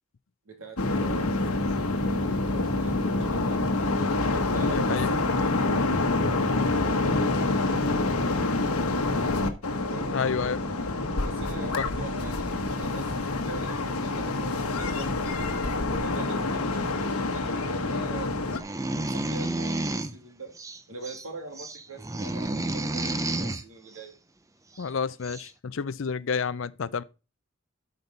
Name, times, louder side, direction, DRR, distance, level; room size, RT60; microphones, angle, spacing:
voice 1, 0.4-1.6 2.0-3.6 4.5-5.9 6.2-8.5 9.8-10.6 11.2-15.1 15.9-18.5 18.9-20.5 20.9-24.1, right 2 dB, 75° right, 2.8 m, -43 dB
sound 1, 0.8-18.6, left 2 dB, 90° left, 1.2 m, -27 dB
voice 2, 4.7-5.1 10.1-10.6 11.8-11.9 24.8-27.0, left 5 dB, 60° left, 0.5 m, -29 dB
sound 2, 18.5-20.2 20.6-21.2 21.6-23.6 24.8-24.9 25.2-25.5, right 2 dB, 15° right, 0.5 m, -31 dB
12.5 x 5.3 x 4.1 m
head